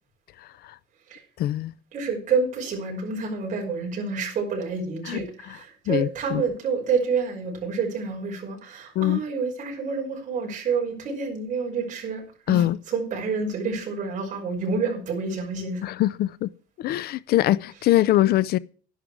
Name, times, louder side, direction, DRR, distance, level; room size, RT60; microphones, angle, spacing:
voice 1, 0.4-0.8 1.4-1.7 5.0-5.6 5.9-6.4 9.0-9.2 12.5-12.8 15.8-16.5 16.8-18.6, left 14 dB, 55° left, 0.5 m, -23 dB
voice 2, 1.9-15.8, right 4 dB, 40° right, 5.7 m, -28 dB
11.5 x 11.0 x 4.8 m
cardioid pair, 165°, 19 cm